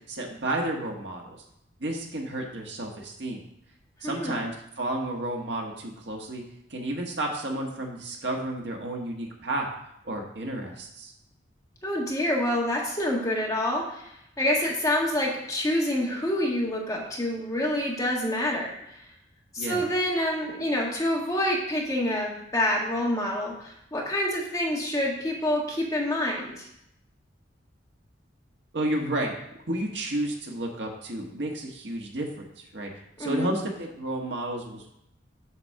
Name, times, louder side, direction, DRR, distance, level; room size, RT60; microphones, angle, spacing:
voice 1, 0.1-1.4 1.8-3.4 4.0-6.4 6.7-9.7 10.0-11.1 19.6-19.8 28.7-29.3 29.7-32.9 33.2-34.9, right 1 dB, 65° right, 0 dB, 1.6 m, -31 dB
voice 2, 4.0-4.3 11.8-19.0 19.5-26.7 33.2-33.5, left 1 dB, 20° left, -2 dB, 1.7 m, -27 dB
8.0 x 4.3 x 6.6 m, 0.79 s
head